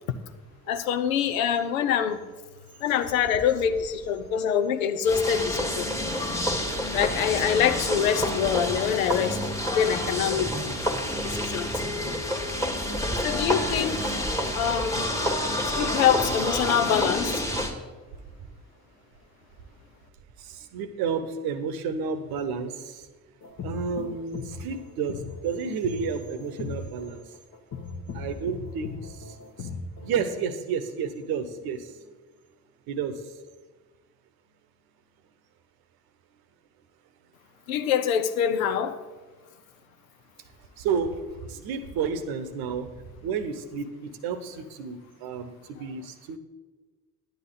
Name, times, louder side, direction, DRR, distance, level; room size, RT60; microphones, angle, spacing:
voice 1, 0.7-2.2 2.8-5.9 6.9-9.4 9.8-10.5 11.2-11.7 13.2-14.2 14.5-15.1 15.8-17.4 37.7-39.0, left 8 dB, 75° left, 10 dB, 0.6 m, -25 dB
sound 1, 5.0-17.7, equal, 5° left, 1.3 m, -28 dB
voice 2, 20.4-23.1 23.6-27.3 28.1-29.7 30.0-32.1 32.9-33.4 40.8-46.4, right 6 dB, 60° right, 10 dB, 0.9 m, -31 dB
sound 2, 23.4-30.4, left 4 dB, 45° left, 1.1 m, -38 dB
10.5 x 9.2 x 3.9 m, 1.3 s
figure-of-eight pair, 45°, 42 cm